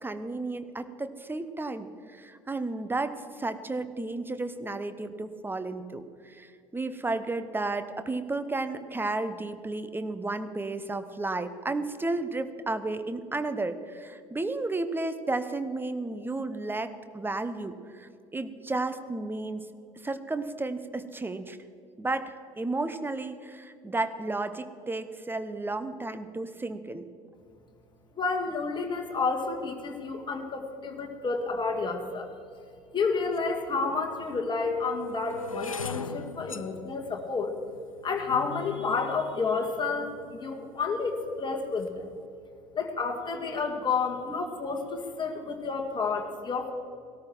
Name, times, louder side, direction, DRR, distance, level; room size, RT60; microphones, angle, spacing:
voice 1, 0.0-19.6 20.0-21.6 22.0-27.0, right 2 dB, 10° right, 11 dB, 1.0 m, -33 dB
voice 2, 28.1-32.4 32.9-37.5 38.0-42.1 42.7-46.7, left 4 dB, 25° left, 2 dB, 1.9 m, -30 dB
sound 1, 33.4-33.5 34.2-40.4 41.0-41.4 41.6-42.0, left 5 dB, 90° left, 0.4 m, -40 dB
18.0 x 13.5 x 4.6 m, 2.5 s
figure-of-eight pair, 60°, 17 cm